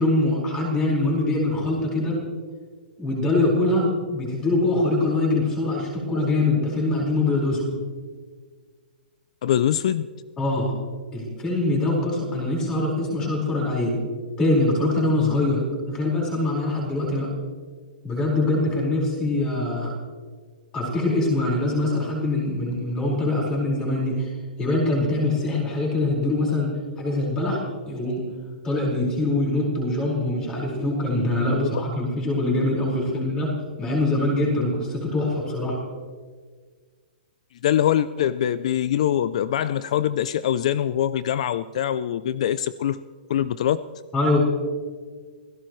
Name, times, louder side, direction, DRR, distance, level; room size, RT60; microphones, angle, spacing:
voice 1, 0.0-2.2 3.0-7.8 10.4-10.7 11.1-14.0 14.4-17.3 18.0-19.9 20.7-24.3 24.6-26.7 27.0-27.6 27.9-28.3 28.6-33.5 33.8-35.8 44.1-44.4, left 2 dB, 15° left, -3 dB, 4.8 m, -23 dB
voice 2, 9.4-10.1 31.5-31.6 37.6-43.0 43.3-43.8, left 10 dB, 40° left, 15 dB, 0.4 m, -23 dB
28.5 x 16.5 x 3.1 m, 1.6 s
hypercardioid pair, 175°, 5 cm